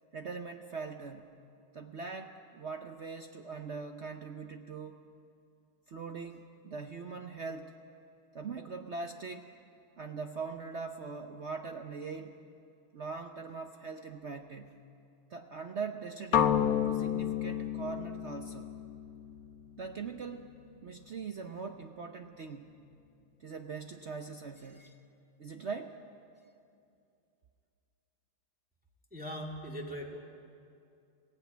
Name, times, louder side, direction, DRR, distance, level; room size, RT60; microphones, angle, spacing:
voice 1, 0.1-1.3 1.7-5.0 5.9-7.8 8.3-9.5 10.0-12.4 12.9-14.7 15.3-16.6 16.9-18.7 19.8-20.5 20.8-22.7 23.4-25.0 25.4-26.0, right 5 dB, 55° right, 5 dB, 0.7 m, -41 dB
sound 1, 16.3-20.3, left 9 dB, 60° left, 1.1 m, -31 dB
voice 2, 29.1-30.2, equal, 5° right, -1 dB, 2.2 m, -40 dB
22.0 x 16.0 x 9.3 m, 2.5 s
omnidirectional pair, 2.2 m